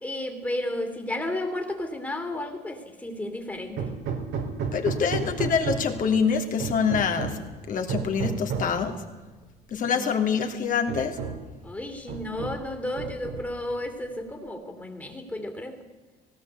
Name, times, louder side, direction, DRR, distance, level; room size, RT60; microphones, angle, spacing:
voice 1, 0.0-3.9 9.9-10.1 11.6-15.8, left 1 dB, 10° left, 4 dB, 3.0 m, -33 dB
Hammer, 3.8-6.0 6.6-7.5 7.9-8.8 9.8-9.9 10.3-10.5 10.9-11.5 12.1-12.7 13.0-13.6, right 5 dB, 80° right, 3.9 m, -32 dB
voice 2, 4.7-7.4 7.7-9.0 9.7-11.2, left 6 dB, 55° left, 5 dB, 3.0 m, -25 dB
18.5 x 17.5 x 8.2 m, 1.3 s
cardioid pair, 110°, 17 cm